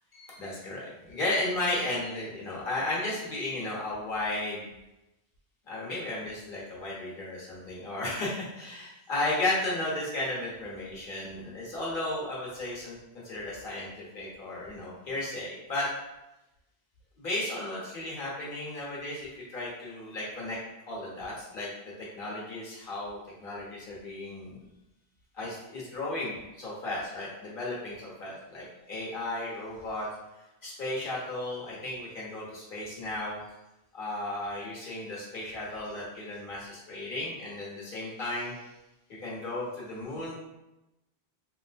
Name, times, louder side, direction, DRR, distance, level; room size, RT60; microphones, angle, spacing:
voice 1, 0.2-4.7 5.7-13.0 13.2-13.9 14.1-15.9 17.2-20.6 20.9-24.6 25.4-30.1 30.6-33.4 33.9-38.6 39.2-40.3, left 2 dB, 55° left, -5 dB, 1.1 m, -34 dB
3.0 x 3.0 x 2.5 m, 0.96 s
omnidirectional pair, 1.1 m